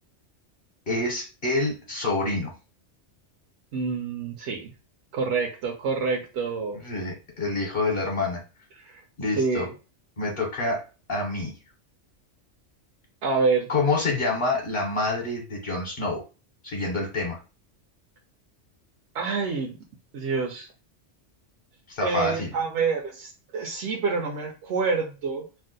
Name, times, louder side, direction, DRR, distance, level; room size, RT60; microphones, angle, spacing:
voice 1, 0.9-2.5 6.7-8.4 9.2-9.7 10.2-10.8 11.1-11.5 13.7-16.2 16.6-17.4 21.9-22.5, left 2 dB, 55° left, 0 dB, 0.9 m, -27 dB
voice 2, 3.7-4.7 5.1-6.8 8.8-9.0 9.4-9.7 13.2-13.7 19.1-19.8 20.1-20.7 22.0-25.4, right 4 dB, 75° right, 1 dB, 0.9 m, -27 dB
2.6 x 2.1 x 3.8 m, 0.32 s
omnidirectional pair, 1.2 m